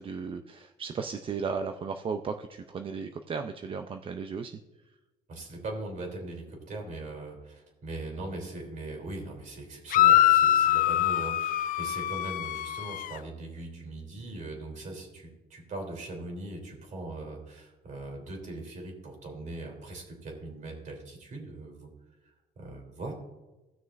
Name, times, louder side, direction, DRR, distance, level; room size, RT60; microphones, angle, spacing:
voice 1, 0.0-4.6, right 5 dB, 30° right, 6 dB, 0.5 m, -35 dB
voice 2, 5.3-21.9 22.2-23.1, right 2 dB, 50° right, 1 dB, 3.2 m, -40 dB
sound 1, 9.9-13.2, left 13 dB, 55° left, 0.4 m, -23 dB
17.0 x 6.3 x 2.5 m, 1.1 s
cardioid pair, 110°, 17 cm